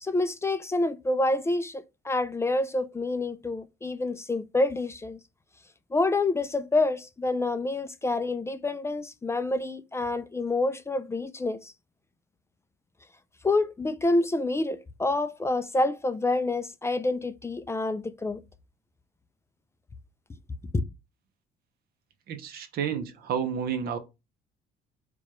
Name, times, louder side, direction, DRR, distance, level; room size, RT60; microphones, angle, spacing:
voice 1, 0.0-5.2 5.9-11.7 13.4-18.4 20.7-20.8, left 2 dB, 15° left, 0.3 m, -27 dB
voice 2, 22.3-24.0, right 7 dB, 65° right, 0.7 m, -30 dB
4.5 x 2.3 x 3.1 m
cardioid pair, 110°, 17 cm